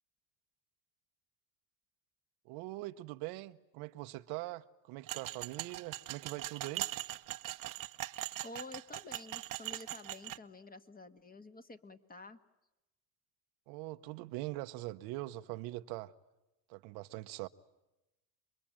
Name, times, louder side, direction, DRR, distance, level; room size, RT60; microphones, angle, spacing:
voice 1, 2.4-6.9 13.7-16.1 16.7-17.5, right 18 dB, 85° right, 1.0 m, -42 dB
sound 1, 5.1-10.4, right 15 dB, 55° right, 1.0 m, -41 dB
voice 2, 8.4-12.4, left 2 dB, 25° left, 1.8 m, -50 dB
29.0 x 22.5 x 8.9 m
supercardioid pair, 95°, 38 cm